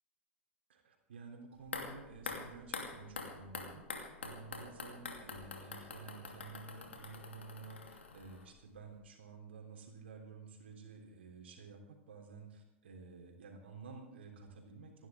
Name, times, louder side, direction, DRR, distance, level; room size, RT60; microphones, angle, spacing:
voice 1, 0.7-15.1, right 4 dB, 70° right, 3 dB, 3.5 m, -52 dB
sound 1, 1.6-8.7 9.0-9.1, left 4 dB, 75° left, 2.4 m, -46 dB
27.5 x 11.5 x 3.7 m, 0.85 s
figure-of-eight pair, 85°, 6 cm